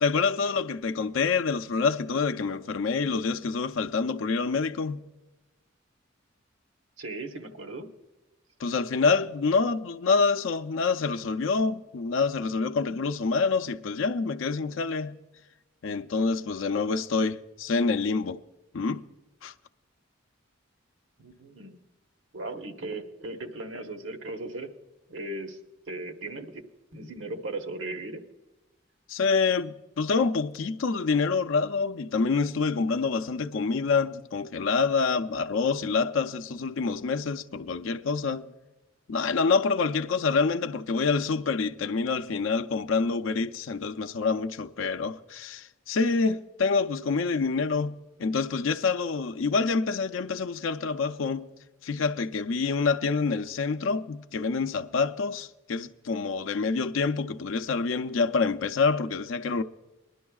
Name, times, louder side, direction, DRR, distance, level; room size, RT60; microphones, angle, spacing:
voice 1, 0.0-5.0 8.6-15.2 15.8-18.4 18.7-19.0 19.4-19.5 29.1-38.5 39.1-51.5 51.8-59.6, left 4 dB, 85° left, 0.5 m, -27 dB
voice 2, 7.0-7.9 21.2-21.8 22.3-24.7 25.1-25.6 25.9-26.6 26.9-28.2, right 2 dB, 75° right, 1.2 m, -37 dB
21.5 x 11.5 x 2.3 m
head